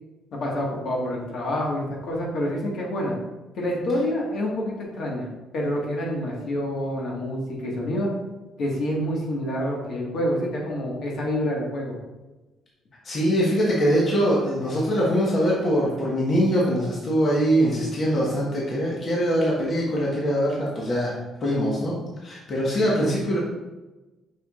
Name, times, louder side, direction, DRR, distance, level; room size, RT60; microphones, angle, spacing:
voice 1, 0.3-3.1 3.5-5.3 5.5-8.1 8.6-12.0, equal, 55° left, -2 dB, 1.6 m, -27 dB
voice 2, 13.0-22.0 22.2-23.4, equal, 40° left, -5 dB, 1.3 m, -23 dB
6.9 x 5.9 x 2.4 m, 1.1 s
cardioid pair, 145°, 0 cm